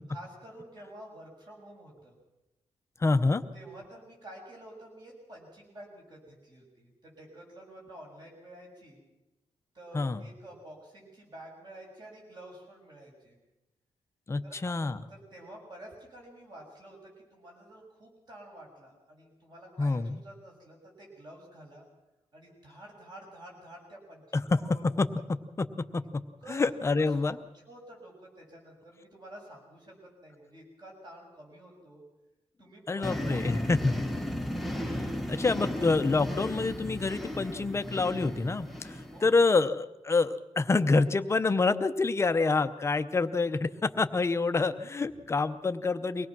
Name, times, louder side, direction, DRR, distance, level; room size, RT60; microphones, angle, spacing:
voice 1, 0.1-2.1 3.5-9.0 9.7-13.4 14.4-14.8 15.1-21.8 22.3-24.8 26.4-26.6 27.0-27.1 27.5-32.0 32.6-33.7 34.3-34.4 39.1-39.5 45.2-45.3, right 1 dB, 40° right, -1 dB, 6.9 m, -49 dB
voice 2, 3.0-3.4 9.9-10.2 14.3-15.0 19.8-20.2 24.6-25.1 25.6-25.7 25.9-26.0 26.5-27.4 32.9-34.0 34.9-35.0 35.3-46.3, left 3 dB, 25° left, 9 dB, 0.7 m, -27 dB
sound 1, 33.0-39.4, equal, ahead, 1.0 m, -35 dB
24.0 x 18.0 x 6.1 m, 0.99 s
wide cardioid pair, 180°, 12 cm